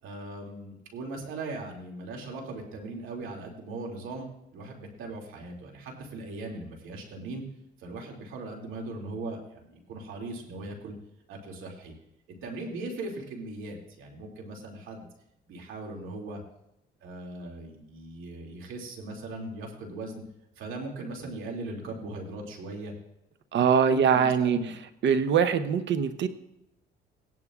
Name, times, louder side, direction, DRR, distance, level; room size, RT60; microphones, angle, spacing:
voice 1, 0.0-7.4 7.8-10.9 11.3-11.9 12.4-15.1 15.5-16.4 17.0-20.1 20.6-22.9 23.9-24.7, right 2 dB, 90° right, 1 dB, 2.5 m, -39 dB
voice 2, 23.5-24.6 25.0-26.3, right 7 dB, 65° right, 11 dB, 0.8 m, -22 dB
17.5 x 11.0 x 2.4 m, 0.83 s
cardioid pair, 90°, 20 cm